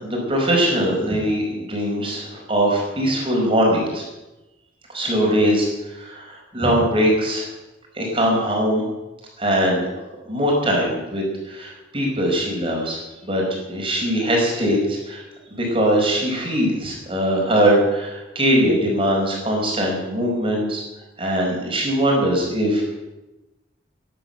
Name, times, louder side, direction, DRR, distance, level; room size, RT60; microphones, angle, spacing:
voice 1, 0.0-4.0 4.9-5.7 6.0-7.5 8.0-8.8 9.4-9.9 10.3-15.2 15.5-20.8 21.2-22.9, equal, 30° right, -1 dB, 5.1 m, -21 dB
15.0 x 11.0 x 8.0 m, 1.0 s
head